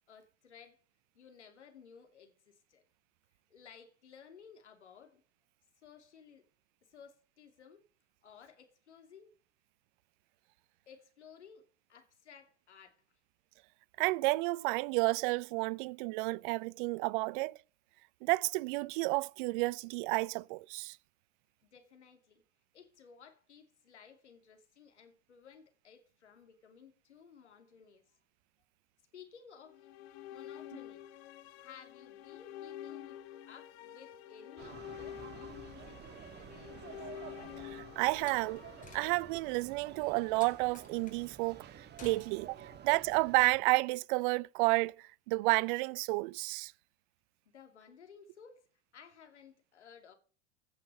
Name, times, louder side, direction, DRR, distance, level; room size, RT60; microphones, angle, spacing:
voice 1, 0.1-0.8 1.1-2.8 3.5-5.2 5.8-6.5 6.9-7.8 8.2-9.3 10.9-13.2 21.6-22.4 22.7-28.2 29.1-29.9 30.3-31.1 31.6-37.1 42.7-42.8 47.5-48.6 48.9-50.1, left 7 dB, 80° left, 2.9 m, -57 dB
voice 2, 14.0-17.6 18.2-21.0 37.6-38.6 38.9-46.7, right 24 dB, 50° right, 0.5 m, -31 dB
sound 1, 29.7-39.9, left 12 dB, 60° left, 1.4 m, -49 dB
sound 2, 34.6-43.6, right 9 dB, 30° right, 1.3 m, -51 dB
Slam, 38.1-39.5 40.4-41.2 42.0-42.6, left 3 dB, 25° left, 4.5 m, -54 dB
16.0 x 6.6 x 6.5 m
hypercardioid pair, 90°, 34 cm